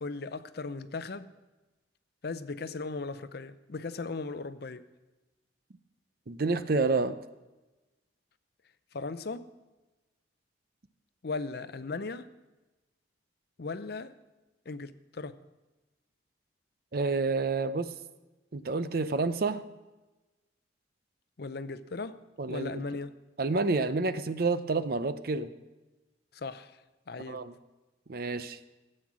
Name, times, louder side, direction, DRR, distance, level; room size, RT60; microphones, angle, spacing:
voice 1, 0.0-1.3 2.2-4.8 8.9-9.5 11.2-12.3 13.6-14.1 14.7-15.4 21.4-22.2 22.5-23.2 26.3-26.7 27.1-27.5, left 3 dB, 55° left, 0.6 m, -37 dB
voice 2, 6.3-7.1 16.9-17.9 18.5-19.6 22.4-22.8 23.4-25.5 27.3-27.5 28.1-28.6, right 3 dB, 50° right, 0.6 m, -29 dB
14.0 x 8.8 x 6.1 m
head